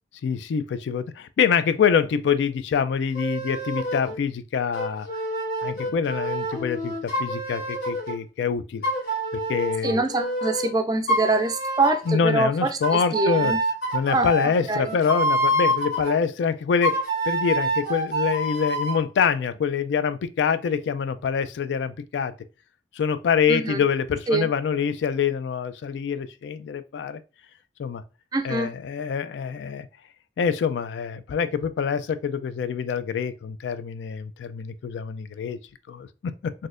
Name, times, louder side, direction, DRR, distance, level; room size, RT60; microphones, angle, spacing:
voice 1, 0.2-5.1 5.6-8.9 9.3-10.0 12.1-13.5 13.9-22.3 22.9-27.2 27.8-28.0 28.4-29.9 30.4-35.6 35.9-36.5, left 6 dB, 80° left, 0.3 m, -25 dB
sound 1, 3.1-4.2 4.7-8.2 8.8-10.7 11.1-12.1 12.8-16.1 16.8-19.0, right 1 dB, 55° left, 1.5 m, -27 dB
voice 2, 9.8-13.6 14.1-14.3 14.7-14.9 23.5-23.9 24.3-24.5 28.3-28.7, right 3 dB, 20° right, 0.3 m, -24 dB
4.0 x 2.7 x 2.5 m
head